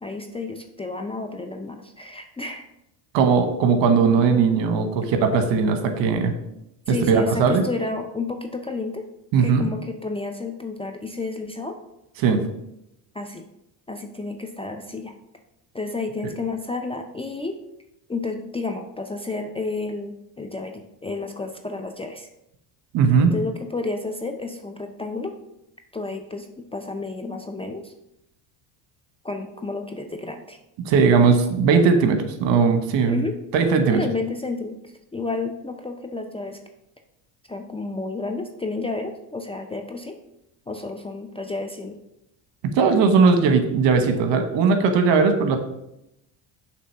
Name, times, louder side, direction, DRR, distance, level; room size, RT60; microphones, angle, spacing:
voice 1, 0.0-2.7 6.9-9.1 9.4-11.8 13.1-13.4 13.9-15.1 15.7-17.6 18.1-22.3 23.2-25.3 25.9-27.9 29.2-30.6 33.1-33.4 33.9-34.8 35.1-36.6 37.5-40.2 40.7-42.0, left 3 dB, 15° left, 4 dB, 0.4 m, -31 dB
voice 2, 3.1-6.3 6.9-7.6 9.3-9.6 12.2-12.4 22.9-23.3 30.8-33.2 33.5-34.0 42.7-45.6, right 5 dB, 65° right, 7 dB, 1.1 m, -18 dB
6.6 x 3.2 x 5.5 m, 0.84 s
supercardioid pair, 90°, 47 cm